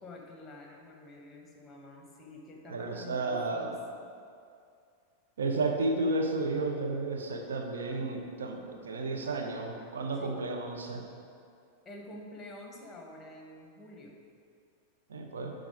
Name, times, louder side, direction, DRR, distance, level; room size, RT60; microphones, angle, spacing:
voice 1, 0.0-4.1 10.2-10.4 11.8-14.1, left 2 dB, 15° left, 1 dB, 1.5 m, -48 dB
voice 2, 2.7-3.8 5.4-11.0 15.1-15.5, right 2 dB, 65° right, 2 dB, 1.0 m, -32 dB
11.0 x 3.9 x 5.1 m, 2.3 s
figure-of-eight pair, 90°, 0 cm